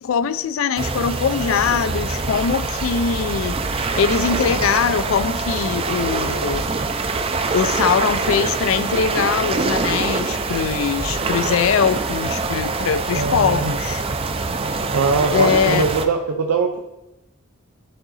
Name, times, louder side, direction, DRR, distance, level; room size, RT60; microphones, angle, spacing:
voice 1, 0.0-6.6 7.5-14.1 15.3-15.8, left 6 dB, 65° left, 15 dB, 0.3 m, -22 dB
sound 1, 0.8-16.1, right 3 dB, 25° right, 0.4 m, -24 dB
voice 2, 13.1-13.7 14.9-16.8, right 4 dB, 90° right, 2 dB, 0.5 m, -21 dB
10.5 x 3.8 x 4.0 m, 0.96 s
head